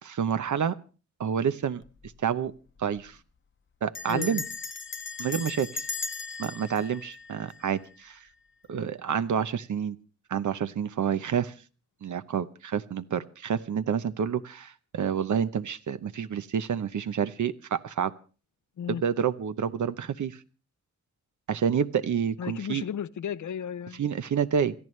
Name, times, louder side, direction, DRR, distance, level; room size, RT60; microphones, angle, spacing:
voice 1, 0.0-0.8 1.2-1.8 2.2-2.5 2.8-3.2 3.8-4.4 5.2-5.7 6.4-8.2 8.7-10.0 10.3-11.5 12.0-18.1 18.9-20.4 21.5-22.8 24.0-24.7, right 7 dB, 85° right, 12 dB, 0.9 m, -28 dB
Bell, 1.8-2.2 2.5-2.6 2.8-3.2 3.9-8.0, left 4 dB, 40° left, 0.8 m, -37 dB
voice 2, 4.1-4.4 18.8-19.0 22.4-24.0, left 8 dB, 90° left, 15 dB, 0.7 m, -34 dB
28.0 x 14.0 x 3.2 m, 0.36 s
wide cardioid pair, 175°, 29 cm